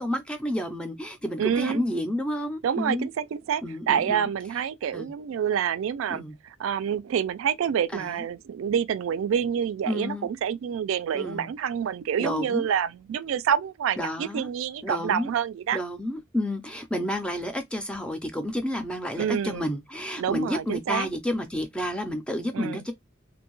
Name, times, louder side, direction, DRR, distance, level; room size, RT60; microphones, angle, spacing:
voice 1, 0.0-3.1 3.6-4.3 4.9-5.1 6.1-6.3 7.9-8.2 9.9-10.3 11.1-11.5 12.2-12.7 14.0-14.5 14.8-15.3 15.7-22.9, left 1 dB, 5° left, 0.4 m, -30 dB
voice 2, 1.4-1.8 2.6-15.8 19.2-19.7 20.2-21.1 22.5-22.8, right 8 dB, 85° right, 0.3 m, -27 dB
2.6 x 2.2 x 3.0 m
head